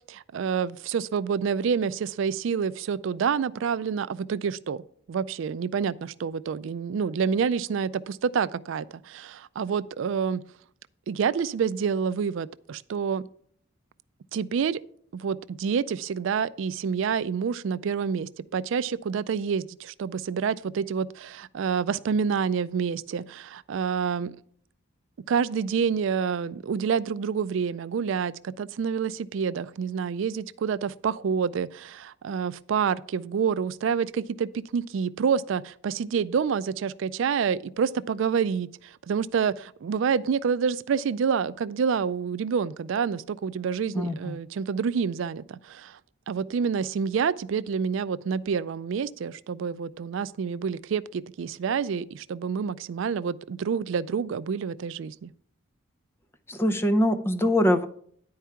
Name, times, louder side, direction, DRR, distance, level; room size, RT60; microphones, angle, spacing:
voice 1, 0.1-10.4 11.1-13.3 14.3-14.8 15.1-24.4 25.3-46.0 46.3-55.3, right 6 dB, 65° right, 0.3 m, -28 dB
voice 2, 43.9-44.4 56.5-57.9, left 1 dB, 10° left, 0.5 m, -23 dB
10.0 x 4.8 x 5.6 m
head